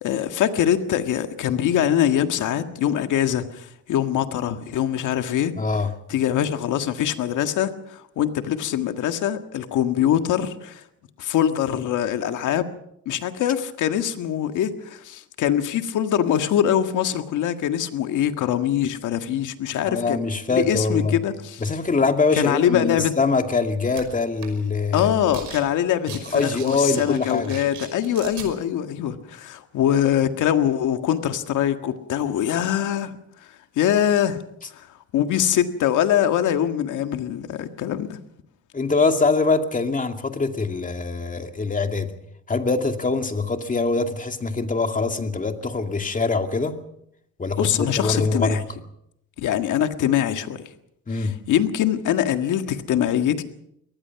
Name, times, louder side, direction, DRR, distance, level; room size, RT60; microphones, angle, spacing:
voice 1, 0.0-5.5 6.1-10.8 11.2-12.6 13.0-20.2 20.5-21.6 22.4-23.1 24.9-26.3 26.6-33.1 33.7-34.4 34.7-34.9 35.1-38.2 47.6-48.6 49.4-50.6 51.1-53.4, left 10 dB, 80° left, 1.8 m, -23 dB
voice 2, 5.6-5.9 19.9-21.2 21.6-25.1 26.3-27.6 38.7-42.1 42.5-46.8 47.4-48.6 51.1-51.4, left 3 dB, 25° left, 2.4 m, -23 dB
sound 1, 24.0-24.1 24.4-24.7 24.9-25.6 25.9-28.5, right 8 dB, 75° right, 5.6 m, -39 dB
24.0 x 19.0 x 5.9 m
cardioid pair, 90°, 30 cm